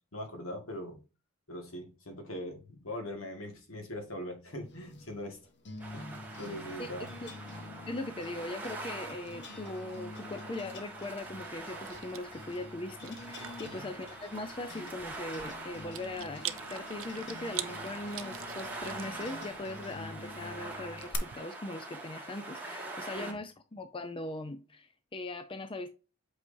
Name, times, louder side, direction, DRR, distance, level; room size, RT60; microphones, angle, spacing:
voice 1, 0.1-1.0 1.5-5.4 5.9-7.1 13.6-13.9 23.2-23.3, left 1 dB, 75° left, 1.8 m, -41 dB
sound 1, 4.7-21.2, left 3 dB, 55° left, 1.0 m, -48 dB
sound 2, 5.8-23.3, right 2 dB, 10° right, 1.5 m, -44 dB
voice 2, 7.9-25.9, left 2 dB, 25° left, 0.5 m, -40 dB
Chewing mastication, 11.1-21.4, right 13 dB, 70° right, 0.6 m, -46 dB
8.3 x 4.8 x 2.7 m
head